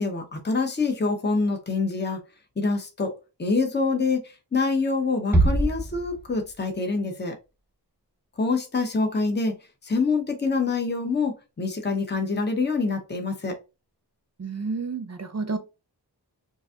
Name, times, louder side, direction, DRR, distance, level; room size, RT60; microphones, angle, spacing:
voice 1, 0.0-2.2 2.6-3.1 3.4-7.3 8.4-9.5 9.8-13.6, left 4 dB, 25° left, 0.8 m, -25 dB
Bass drum, 5.3-6.7, right 2 dB, 5° right, 1.1 m, -24 dB
voice 2, 14.4-15.6, right 4 dB, 40° right, 0.6 m, -30 dB
3.9 x 2.6 x 2.4 m
wide cardioid pair, 55°, 41 cm